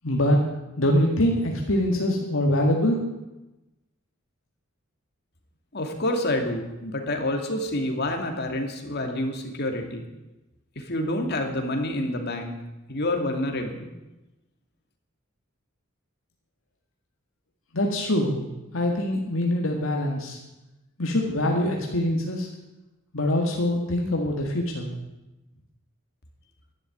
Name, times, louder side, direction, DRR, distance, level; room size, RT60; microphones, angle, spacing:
voice 1, 0.0-0.4 0.8-3.0 17.7-18.5 18.7-20.4 21.0-22.5 23.1-24.9, left 1 dB, 75° left, 0 dB, 2.0 m, -24 dB
voice 2, 5.7-10.0 10.8-12.6 12.9-13.9, left 1 dB, 55° left, 4 dB, 2.5 m, -28 dB
12.0 x 10.5 x 9.5 m, 1.0 s
head